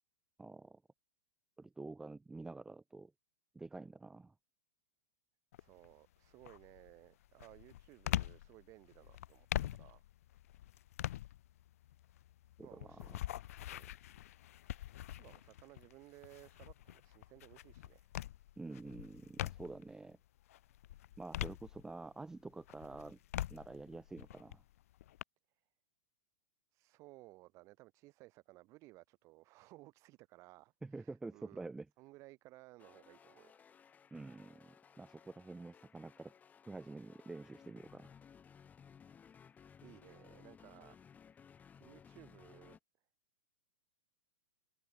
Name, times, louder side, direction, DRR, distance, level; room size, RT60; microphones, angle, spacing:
voice 1, 0.4-0.8 1.6-3.1 3.5-4.3 12.6-13.2 18.6-20.2 21.2-23.2 23.5-24.6 30.8-31.9 34.1-36.3 36.7-38.1, right 3 dB, 5° right, 0.4 m, -48 dB
sound 1, 5.5-5.9 6.4-19.9 20.4-22.2 22.6-25.2, left 13 dB, 55° left, 0.7 m, -44 dB
voice 2, 5.6-10.0 12.6-13.1 13.6-13.9 15.2-18.1 26.7-31.7 32.0-33.5 39.8-41.0 41.8-42.8, right 20 dB, 35° right, 1.0 m, -59 dB
sound 2, 32.8-42.8, left 7 dB, 15° left, 3.6 m, -60 dB
figure-of-eight pair, 110°, 9 cm